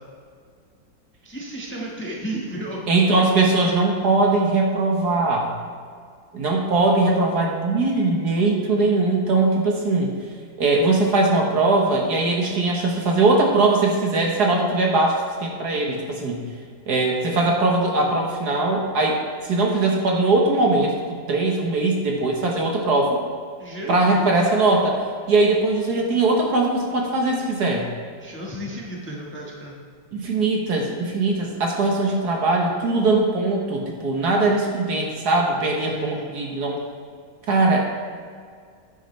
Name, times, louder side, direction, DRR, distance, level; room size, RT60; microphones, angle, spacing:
voice 1, 1.2-2.8 23.6-24.5 28.2-29.8 35.9-36.4, right 1 dB, 5° left, -3 dB, 1.3 m, -33 dB
voice 2, 2.9-5.5 6.3-10.1 10.6-15.1 15.4-16.4 16.9-20.9 21.3-23.2 23.9-25.0 25.3-27.9 30.1-36.8 37.5-38.0, right 2 dB, 60° right, 0 dB, 1.7 m, -20 dB
11.0 x 9.4 x 3.3 m, 2.1 s
omnidirectional pair, 2.0 m